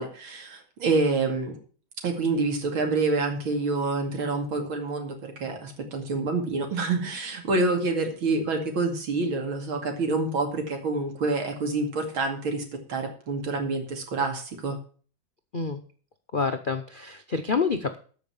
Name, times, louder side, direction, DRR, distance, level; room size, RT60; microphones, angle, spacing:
voice 1, 0.0-1.6 2.0-12.6 12.9-14.8, right 3 dB, 80° right, 4 dB, 3.1 m, -27 dB
voice 2, 16.3-18.0, left 4 dB, 75° left, 7 dB, 0.4 m, -27 dB
13.5 x 5.8 x 7.0 m, 0.42 s
omnidirectional pair, 2.2 m